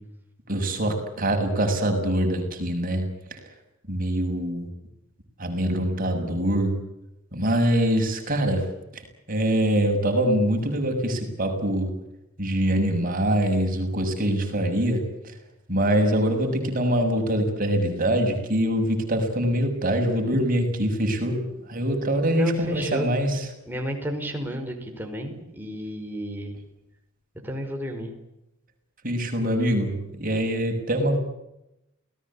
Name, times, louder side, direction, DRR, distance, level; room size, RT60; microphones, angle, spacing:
voice 1, 0.5-3.4 3.9-4.7 5.4-6.7 7.3-8.7 8.9-9.0 9.3-11.9 12.4-15.3 15.7-21.4 21.7-23.5 29.0-31.2, right 1 dB, 40° right, 4 dB, 6.9 m, -24 dB
voice 2, 22.4-23.1 23.7-26.6 27.4-28.1, equal, 10° right, 2 dB, 5.6 m, -32 dB
29.5 x 19.0 x 8.8 m, 0.88 s
head